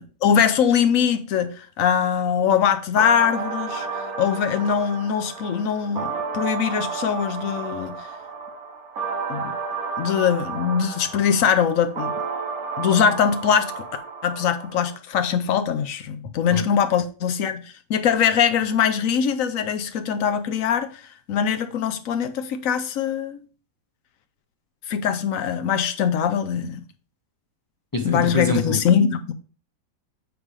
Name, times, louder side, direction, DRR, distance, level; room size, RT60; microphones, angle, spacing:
voice 1, 0.0-3.9 4.2-8.0 9.3-9.5 10.0-12.1 12.8-13.9 14.2-17.6 17.9-21.0 21.3-23.4 24.9-26.8 28.0-29.3, left 7 dB, 65° left, 0.9 m, -22 dB
sound 1, 3.0-15.0, right 5 dB, 60° right, 1.6 m, -32 dB
voice 2, 27.9-28.8, left 3 dB, 30° left, 0.4 m, -25 dB
8.1 x 3.4 x 4.8 m
omnidirectional pair, 1.8 m